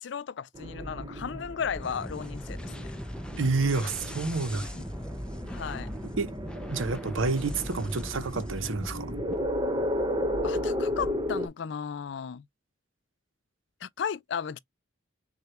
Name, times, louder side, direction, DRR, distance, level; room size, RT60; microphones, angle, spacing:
voice 1, 0.0-3.0 3.7-3.9 4.5-4.8 5.5-5.9 10.4-12.5 13.8-14.6, left 7 dB, 60° left, 0.4 m, -35 dB
sound 1, 0.5-11.5, equal, 25° right, 0.9 m, -34 dB
sound 2, 1.8-9.4, equal, 5° left, 0.5 m, -39 dB
voice 2, 3.4-4.7 6.2-6.3 6.7-9.1, right 3 dB, 85° right, 0.8 m, -29 dB
6.5 x 2.3 x 2.9 m
head